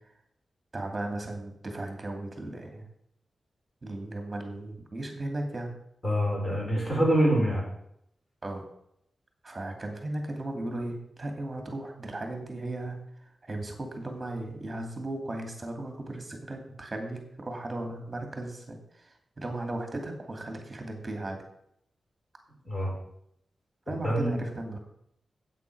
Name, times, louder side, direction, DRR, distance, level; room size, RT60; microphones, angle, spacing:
voice 1, 0.7-2.8 3.8-5.7 8.4-8.6 9.4-13.0 13.4-21.4 23.9-24.8, right 2 dB, 25° right, 4 dB, 2.5 m, -36 dB
voice 2, 6.0-7.6 22.6-22.9 23.9-24.3, equal, 30° left, -1 dB, 4.4 m, -25 dB
8.6 x 8.4 x 6.7 m, 0.73 s
wide cardioid pair, 120°, 0 cm